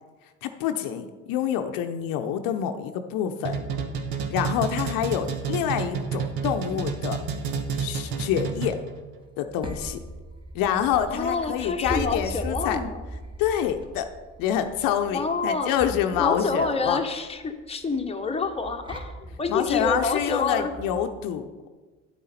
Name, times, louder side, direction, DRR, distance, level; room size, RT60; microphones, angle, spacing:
voice 1, 0.4-3.5 4.3-7.2 7.8-8.8 9.4-10.0 10.5-12.8 13.4-14.1 14.4-17.0 19.5-21.7, left 9 dB, 65° left, 7 dB, 0.8 m, -27 dB
sound 1, 3.4-9.0, right 6 dB, 70° right, 1.2 m, -29 dB
sound 2, 9.2-21.1, right 1 dB, 15° right, 1.7 m, -39 dB
voice 2, 11.1-13.0 15.1-15.7 16.2-20.8, left 4 dB, 15° left, 4 dB, 1.1 m, -28 dB
9.8 x 8.6 x 4.3 m, 1.3 s
hypercardioid pair, 65°, 36 cm